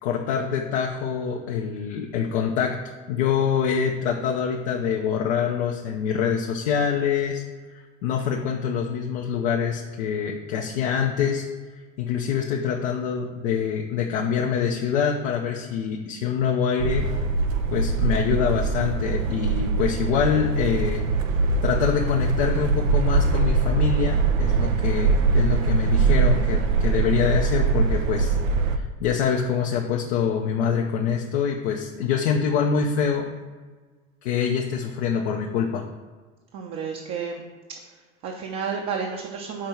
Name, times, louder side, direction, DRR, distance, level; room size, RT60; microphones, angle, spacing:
voice 1, 0.0-2.8 3.1-7.4 7.7-11.4 12.0-17.1 17.7-21.1 21.6-28.4 28.7-33.3 34.2-35.9, left 7 dB, 60° left, 1 dB, 0.7 m, -25 dB
sound 1, 16.8-28.8, right 4 dB, 75° right, 0.6 m, -22 dB
voice 2, 36.5-37.4 37.9-39.7, right 6 dB, 45° right, 1 dB, 0.8 m, -31 dB
6.1 x 4.4 x 4.4 m, 1.4 s
figure-of-eight pair, 65°, 39 cm